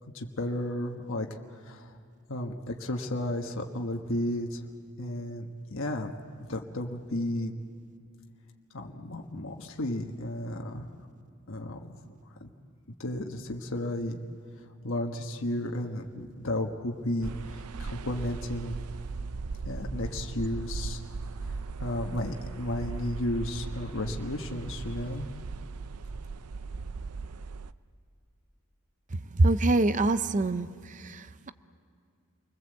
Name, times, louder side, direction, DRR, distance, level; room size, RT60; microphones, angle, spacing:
voice 1, 0.1-1.3 1.6-1.8 2.3-4.6 5.0-6.1 6.5-7.5 8.7-10.9 11.5-11.9 12.4-12.5 13.0-14.2 14.8-17.3 17.8-18.8 19.6-21.0 21.8-25.3, left 1 dB, 60° left, 2 dB, 1.5 m, -33 dB
sound 1, 17.2-27.7, right 4 dB, 85° right, 0.6 m, -38 dB
voice 2, 29.3-30.7 31.0-31.5, right 2 dB, 35° right, 12 dB, 0.6 m, -24 dB
29.5 x 21.0 x 7.9 m, 2.2 s
head